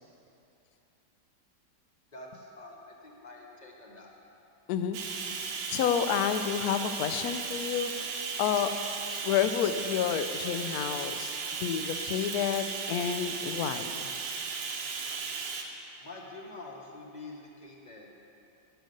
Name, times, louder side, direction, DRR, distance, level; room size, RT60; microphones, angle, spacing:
voice 1, 2.1-4.1 16.0-18.1, left 2 dB, 35° left, -1 dB, 0.8 m, -46 dB
Bathtub (filling or washing), 4.9-15.6, right 5 dB, 75° right, 1.4 m, -36 dB
voice 2, 5.7-7.9 8.4-8.7 9.2-11.3 11.6-14.1, left 9 dB, 70° left, 9 dB, 0.9 m, -29 dB
9.2 x 6.6 x 6.5 m, 2.8 s
omnidirectional pair, 2.0 m